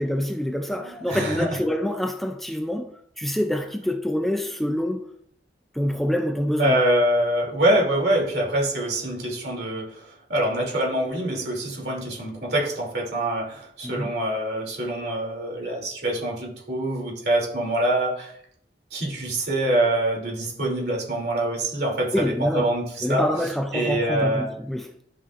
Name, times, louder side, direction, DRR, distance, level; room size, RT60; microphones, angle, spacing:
voice 1, 0.0-5.1 5.7-6.8 13.8-14.1 22.1-22.7 23.0-24.9, equal, ahead, 0.4 m, -26 dB
voice 2, 0.7-1.6 6.6-18.3 18.9-23.2 23.7-24.5, right 1 dB, 65° right, 2.9 m, -25 dB
12.5 x 5.8 x 2.5 m
head